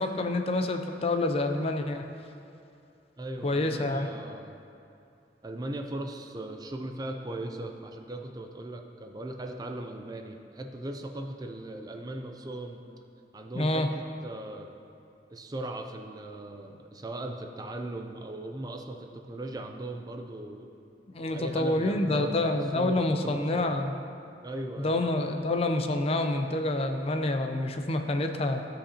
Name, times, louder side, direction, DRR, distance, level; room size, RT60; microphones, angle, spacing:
voice 1, 0.0-2.0 3.4-4.1 13.5-13.9 21.1-23.9 24.8-28.7, left 2 dB, 35° left, 6 dB, 0.4 m, -27 dB
voice 2, 3.2-4.6 5.4-12.8 13.3-14.8 15.3-20.7 21.3-23.8 24.4-25.0, right 1 dB, 20° right, 4 dB, 0.4 m, -38 dB
15.0 x 5.1 x 2.8 m, 2.6 s
head